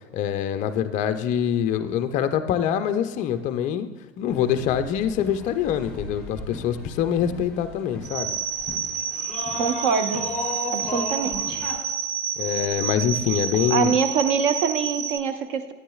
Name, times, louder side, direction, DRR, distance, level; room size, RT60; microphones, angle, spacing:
voice 1, 0.1-3.9 4.2-8.4 12.4-13.9, left 9 dB, 20° left, 9 dB, 0.4 m, -25 dB
sound 1, 4.3-11.8, left 2 dB, 5° left, 2.1 m, -36 dB
sound 2, 8.0-15.2, right 7 dB, 75° right, 0.8 m, -29 dB
voice 2, 9.5-10.3 10.7-11.6 13.7-15.7, right 6 dB, 45° right, 9 dB, 0.9 m, -24 dB
13.0 x 9.5 x 2.4 m, 1.3 s
hypercardioid pair, 105°, 39 cm